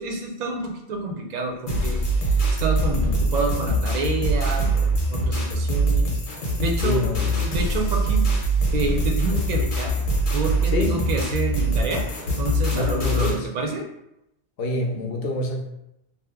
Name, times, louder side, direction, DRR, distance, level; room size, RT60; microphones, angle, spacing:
voice 1, 0.0-7.1 7.4-8.3 8.7-10.0 10.3-12.1 12.4-13.8, right 3 dB, 55° right, 2 dB, 0.5 m, -29 dB
sound 1, 1.7-13.4, right 1 dB, 90° left, 1.1 m, -23 dB
voice 2, 6.8-7.5 10.7-11.1 12.7-13.5 14.6-15.6, left 1 dB, 65° left, 0 dB, 0.8 m, -27 dB
2.8 x 2.0 x 3.5 m, 0.84 s
omnidirectional pair, 1.1 m